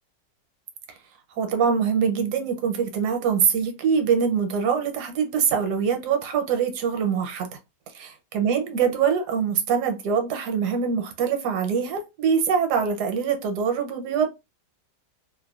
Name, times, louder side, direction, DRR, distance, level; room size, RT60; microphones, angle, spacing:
voice 1, 1.4-7.5 7.9-8.1 8.3-14.3, right 6 dB, 75° right, 1.2 m, -23 dB
2.8 x 2.1 x 2.3 m
omnidirectional pair, 1.8 m